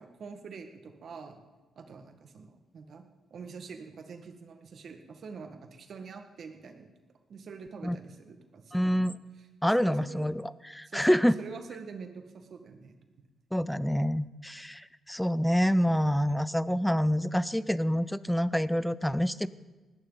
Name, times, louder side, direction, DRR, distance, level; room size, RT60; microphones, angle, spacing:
voice 1, 0.0-1.4 1.8-3.0 3.3-6.9 7.3-8.9 9.6-10.3 10.9-13.3, right 5 dB, 55° right, 6 dB, 1.7 m, -46 dB
voice 2, 8.7-9.2 9.6-11.3 13.5-19.5, equal, ahead, 17 dB, 0.5 m, -27 dB
19.0 x 14.5 x 4.0 m, 1.2 s
cardioid pair, 105°, 0 cm